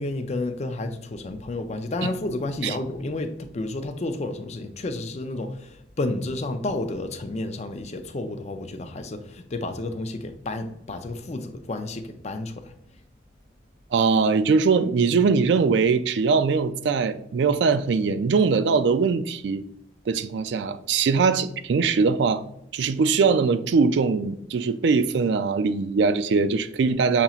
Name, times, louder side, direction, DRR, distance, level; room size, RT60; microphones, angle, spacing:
voice 1, 0.0-12.7, left 2 dB, 35° left, 0.4 m, -31 dB
voice 2, 13.9-19.6 20.1-22.4 22.7-27.2, right 5 dB, 65° right, 0.3 m, -21 dB
6.7 x 2.9 x 2.4 m
head